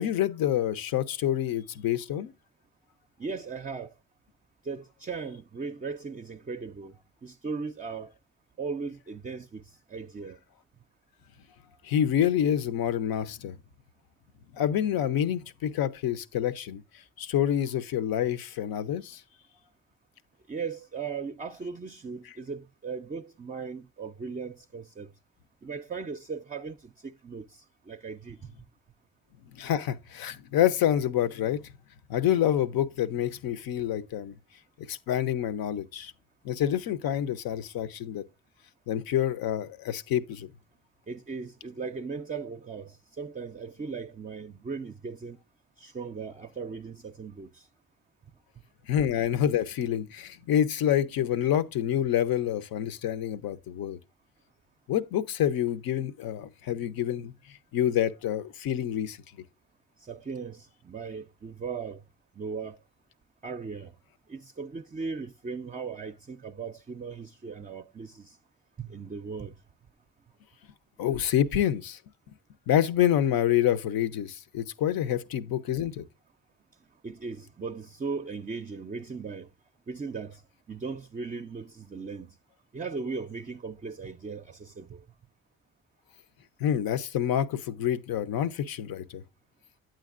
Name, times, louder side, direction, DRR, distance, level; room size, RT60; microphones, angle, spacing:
voice 1, 0.0-2.3 11.8-13.6 14.6-16.8 17.2-19.2 29.5-31.6 32.1-34.3 34.9-36.1 36.4-38.2 38.9-40.5 48.9-54.0 54.9-57.3 57.7-59.2 71.0-72.0 72.7-76.1 86.6-89.2, left 10 dB, 70° left, 0.7 m, -27 dB
voice 2, 3.2-3.9 4.6-7.0 7.2-8.1 8.6-10.4 20.5-25.1 25.6-28.5 41.1-45.4 45.8-47.7 60.0-62.0 62.4-62.8 63.4-63.9 64.3-68.4 68.8-69.5 77.0-79.5 79.9-80.4 80.7-82.4 82.7-85.0, right 5 dB, 25° right, 0.5 m, -38 dB
9.0 x 7.6 x 2.4 m
supercardioid pair, 60°, 36 cm